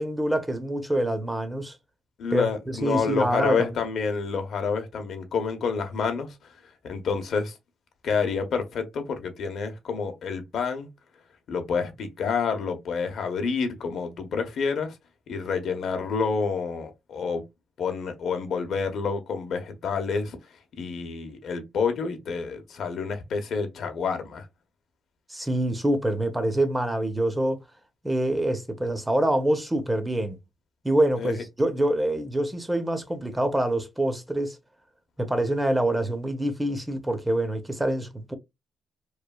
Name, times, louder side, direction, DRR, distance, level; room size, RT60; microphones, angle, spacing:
voice 1, 0.0-1.7 2.3-3.7 25.3-27.6 28.0-30.4 30.8-34.6 35.2-38.3, right 1 dB, 10° right, 0.6 m, -25 dB
voice 2, 2.2-6.3 6.9-7.5 8.0-10.9 11.5-15.0 15.3-17.4 17.8-20.4 20.8-24.5 31.2-31.3, left 5 dB, 65° left, 0.7 m, -28 dB
3.1 x 2.2 x 2.2 m
cardioid pair, 90°, 0 cm